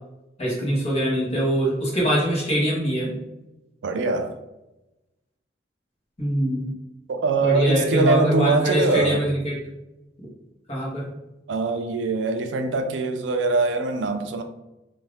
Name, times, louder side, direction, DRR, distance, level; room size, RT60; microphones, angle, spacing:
voice 1, 0.4-3.1 6.2-6.7 7.4-9.6 10.7-11.1, equal, 35° left, -6 dB, 1.1 m, -23 dB
voice 2, 3.8-4.4 7.1-9.2 11.5-14.4, right 3 dB, 75° right, 7 dB, 0.4 m, -23 dB
2.7 x 2.4 x 3.3 m, 0.97 s
head